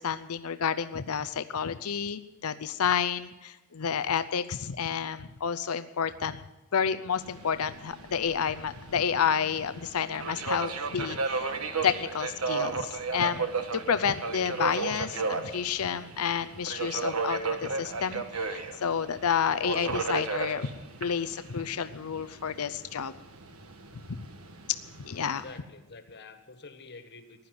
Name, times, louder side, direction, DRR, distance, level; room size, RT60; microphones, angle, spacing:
voice 1, 0.0-6.4 6.7-20.7 21.0-23.1 24.1-24.2 25.0-25.4, left 7 dB, 85° left, 11 dB, 0.6 m, -30 dB
Subway metro underground, 7.1-25.6, right 4 dB, 80° right, 1.4 m, -35 dB
voice 2, 25.1-27.5, left 3 dB, 50° left, 8 dB, 1.6 m, -48 dB
15.5 x 11.0 x 7.8 m, 1.0 s
head